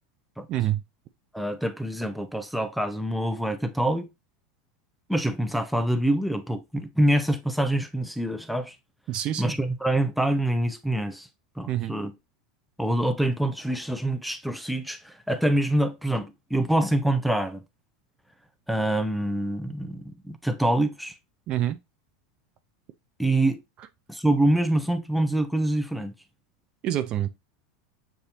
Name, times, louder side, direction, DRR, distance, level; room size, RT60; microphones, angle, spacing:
voice 1, 0.5-0.8 9.1-9.5 11.7-12.0 21.5-21.8 26.8-27.3, right 12 dB, 45° right, 0.5 m, -26 dB
voice 2, 1.3-4.1 5.1-8.8 9.4-11.3 11.6-12.1 12.8-17.6 18.7-21.2 23.2-23.6 24.1-26.1, right 1 dB, ahead, 0.6 m, -25 dB
6.8 x 2.7 x 2.8 m
supercardioid pair, 115°, 2 cm